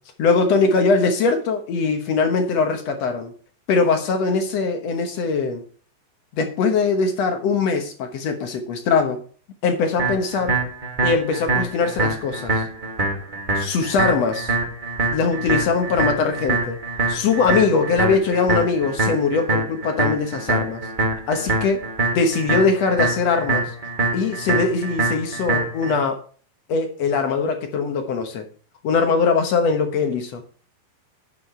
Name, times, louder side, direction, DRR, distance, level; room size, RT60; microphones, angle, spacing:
voice 1, 0.2-3.3 3.7-5.6 6.3-9.2 9.6-10.6 11.0-12.6 13.6-14.5 15.1-16.8 17.1-20.9 21.3-21.8 22.1-23.7 24.1-26.2 26.7-28.5 28.8-30.4, left 4 dB, 65° left, 5 dB, 1.7 m, -21 dB
sound 1, 10.0-26.0, right 3 dB, 45° right, 0.6 m, -24 dB
10.5 x 6.7 x 4.3 m, 0.42 s
omnidirectional pair, 4.4 m